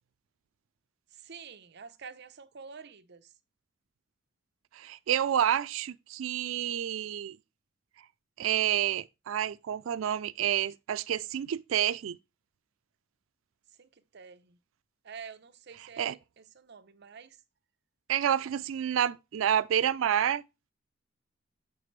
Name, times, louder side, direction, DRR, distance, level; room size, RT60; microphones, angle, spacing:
voice 1, 1.1-3.3 13.8-14.6 15.0-17.4, right 6 dB, 60° right, 0.7 m, -48 dB
voice 2, 4.7-7.4 8.4-12.2 16.0-16.1 18.1-20.4, right 10 dB, 90° right, 0.4 m, -29 dB
6.7 x 6.6 x 3.2 m
head